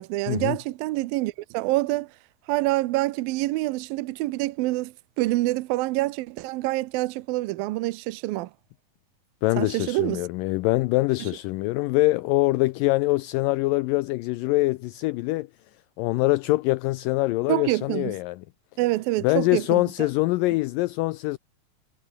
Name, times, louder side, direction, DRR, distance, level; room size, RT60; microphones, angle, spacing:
voice 1, 0.0-2.1 2.5-8.5 9.6-10.2 17.5-18.1 18.8-19.8, right 19 dB, 75° right, 2.4 m, -26 dB
voice 2, 9.4-15.5 16.0-18.4 19.2-21.4, left 20 dB, 85° left, 2.0 m, -24 dB
omnidirectional pair, 4.4 m